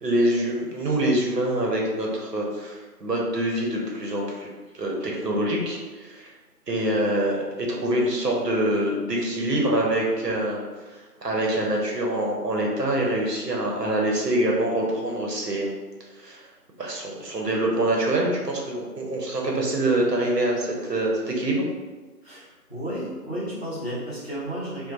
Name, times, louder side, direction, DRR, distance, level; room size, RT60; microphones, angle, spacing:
voice 1, 0.0-6.3 6.7-10.6 10.9-15.7 16.1-16.5 16.8-21.6, right 1 dB, 75° right, -1 dB, 0.8 m, -25 dB
voice 2, 22.2-24.9, right 1 dB, 40° left, -8 dB, 0.7 m, -33 dB
2.9 x 2.1 x 2.5 m, 1.3 s
figure-of-eight pair, 170°, 48 cm